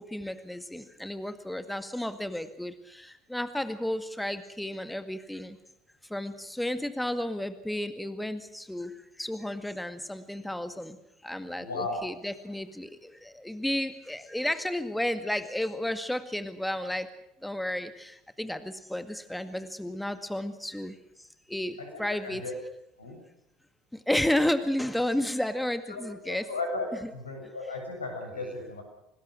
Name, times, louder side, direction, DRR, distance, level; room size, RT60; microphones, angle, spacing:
voice 1, 0.1-5.6 6.1-8.9 9.2-11.0 11.2-17.1 17.4-20.9 21.5-22.4 24.1-26.4, left 1 dB, 5° left, 10 dB, 2.0 m, -32 dB
voice 2, 11.6-12.0 21.8-22.5 23.0-23.2 25.9-26.9 27.1-28.8, left 3 dB, 90° left, 3 dB, 7.0 m, -35 dB
26.0 x 20.0 x 6.5 m, 0.80 s
hypercardioid pair, 65°, 0 cm